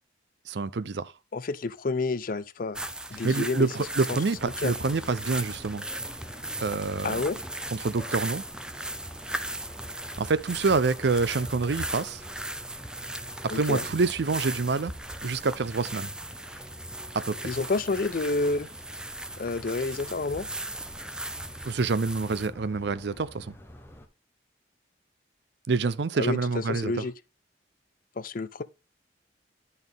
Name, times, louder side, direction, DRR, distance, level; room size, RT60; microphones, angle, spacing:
voice 1, 0.5-1.1 3.2-5.8 6.6-7.3 7.7-8.4 10.2-12.2 13.4-14.9 15.2-16.1 17.1-17.4 21.6-23.5 25.7-26.9, right 4 dB, 65° right, 0.5 m, -27 dB
voice 2, 1.3-2.8 3.1-3.7 4.6-4.7 7.0-7.4 13.5-13.8 17.4-18.7 19.4-20.5 26.2-27.1 28.2-28.6, left 3 dB, 45° left, 0.5 m, -29 dB
sound 1, 2.7-22.5, right 1 dB, 5° right, 0.4 m, -38 dB
sound 2, 4.3-24.1, equal, 10° left, 0.9 m, -46 dB
11.0 x 4.1 x 3.5 m
head